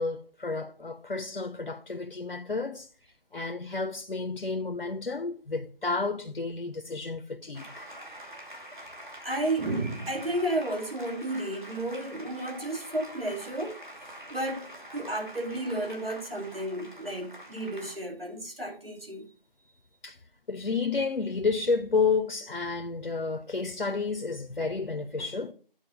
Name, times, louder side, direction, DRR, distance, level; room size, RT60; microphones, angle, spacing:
voice 1, 0.0-2.9 3.3-7.9 20.0-20.2 20.5-25.5, left 4 dB, 70° left, 0.8 m, -31 dB
sound 1, 7.5-18.0, right 1 dB, 55° right, 2.6 m, -45 dB
voice 2, 9.2-13.8 14.3-19.3, right 1 dB, 75° right, 2.5 m, -32 dB
8.9 x 4.3 x 5.7 m
figure-of-eight pair, 180°, 29 cm